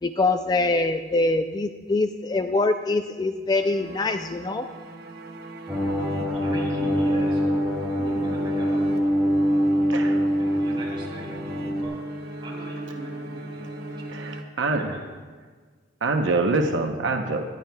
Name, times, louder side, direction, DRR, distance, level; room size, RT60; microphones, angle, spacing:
voice 1, 0.0-4.7, left 2 dB, 20° left, 8 dB, 0.3 m, -24 dB
sound 1, 3.5-15.0, right 2 dB, 60° right, 1.0 m, -38 dB
sound 2, 5.7-11.8, equal, 5° right, 2.5 m, -24 dB
voice 2, 6.3-7.6 7.9-9.3 10.4-12.0 12.4-14.1 14.6-15.1, right 1 dB, 25° right, -5 dB, 3.5 m, -41 dB
voice 3, 9.9-10.2 14.1-15.0 16.0-17.4, right 3 dB, 80° right, 4 dB, 0.8 m, -25 dB
21.0 x 11.0 x 2.3 m, 1.5 s
head